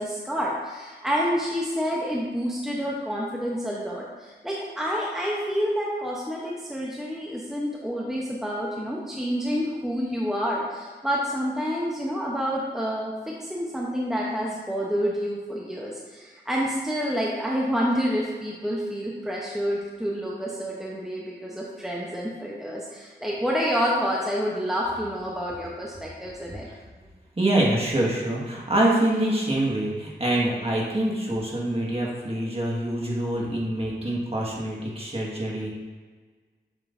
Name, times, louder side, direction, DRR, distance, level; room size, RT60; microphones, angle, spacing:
voice 1, 0.0-26.7, equal, ahead, -4 dB, 0.9 m, -28 dB
voice 2, 27.4-35.8, right 1 dB, 35° right, -3 dB, 1.8 m, -25 dB
7.5 x 6.4 x 2.7 m, 1.4 s
wide cardioid pair, 70°, 18 cm